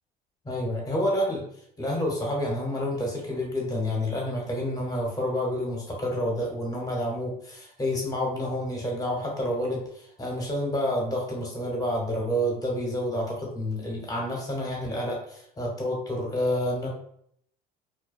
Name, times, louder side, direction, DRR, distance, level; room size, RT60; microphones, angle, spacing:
voice 1, 0.5-1.4 1.8-16.9, left 1 dB, 20° left, -1 dB, 1.0 m, -29 dB
2.4 x 2.1 x 2.5 m, 0.67 s
supercardioid pair, 85°, 19 cm